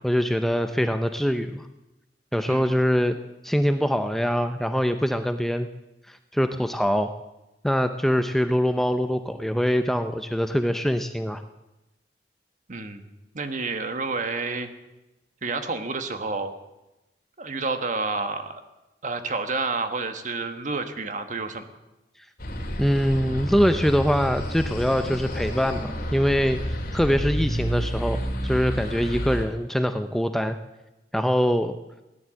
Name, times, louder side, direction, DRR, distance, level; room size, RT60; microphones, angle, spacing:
voice 1, 0.0-1.7 2.3-3.2 3.4-5.7 6.1-7.1 7.6-11.4 22.8-30.6 31.1-31.8, equal, ahead, 8 dB, 0.5 m, -23 dB
voice 2, 12.7-13.0 13.3-14.7 15.4-16.5 17.4-18.6 19.0-21.6, right 3 dB, 45° right, 8 dB, 1.4 m, -29 dB
sound 1, 22.4-29.4, equal, 55° left, 3.0 m, -30 dB
17.0 x 11.0 x 7.6 m, 0.99 s
head